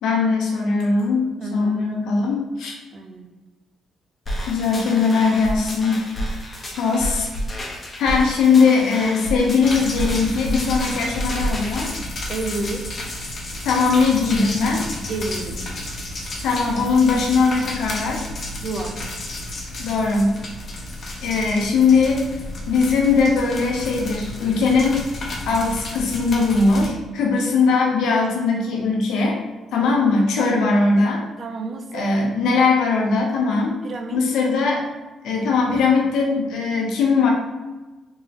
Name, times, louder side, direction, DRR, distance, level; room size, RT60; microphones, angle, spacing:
voice 1, 0.0-1.3 1.5-2.8 4.5-6.0 6.7-7.3 8.0-11.9 13.6-14.8 16.4-18.2 19.8-20.4 21.2-22.2 22.7-25.0 25.5-29.4 29.7-31.2 31.9-33.8 34.1-34.8 35.2-37.3, left 4 dB, 80° left, -1 dB, 0.8 m, -20 dB
voice 2, 1.4-1.8 2.9-3.3 12.3-12.9 15.0-15.6 18.6-18.9 30.4-30.7 31.4-32.1 33.8-34.2, right 3 dB, 50° right, 5 dB, 0.5 m, -30 dB
sound 1, 4.3-11.9, equal, 30° left, 1.1 m, -30 dB
sound 2, 9.6-26.9, left 1 dB, 50° left, 0.9 m, -32 dB
3.7 x 3.1 x 2.9 m, 1.2 s
cardioid pair, 90°, 0 cm